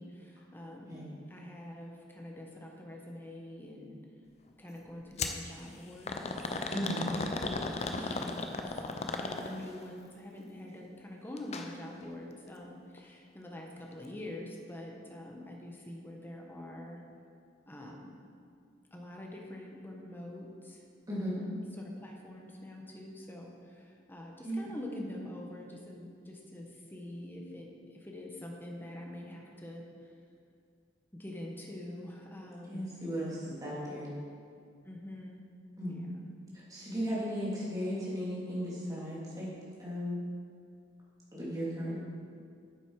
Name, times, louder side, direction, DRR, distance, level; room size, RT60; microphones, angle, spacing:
voice 1, 0.0-4.0 4.6-6.2 7.8-17.0 17.7-18.1 18.9-20.8 21.2-30.1 31.1-32.9 34.8-35.4 35.9-36.3 36.7-36.9, left 1 dB, 10° left, 0 dB, 1.1 m, -45 dB
sound 1, 5.2-5.4 6.1-9.8 11.4-11.7 12.0-12.1 13.0-13.1, left 3 dB, 35° left, 0.6 m, -35 dB
voice 2, 6.7-7.1 21.1-21.4 24.4-24.7 32.7-34.1 35.8-36.0 36.5-39.5 39.8-40.2 41.3-42.0, equal, 20° right, -8 dB, 2.8 m, -36 dB
9.5 x 7.8 x 4.8 m, 2.2 s
head